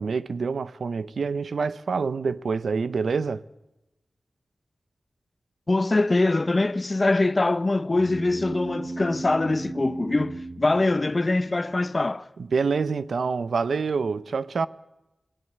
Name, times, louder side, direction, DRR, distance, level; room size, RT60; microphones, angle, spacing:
voice 1, 0.0-3.4 12.4-14.7, right 5 dB, 90° right, 0.7 m, -26 dB
voice 2, 5.7-12.3, left 2 dB, 35° left, 0.7 m, -23 dB
sound 1, 8.0-11.7, right 2 dB, 35° right, 0.7 m, -36 dB
21.0 x 17.5 x 8.0 m
wide cardioid pair, 115°, 0 cm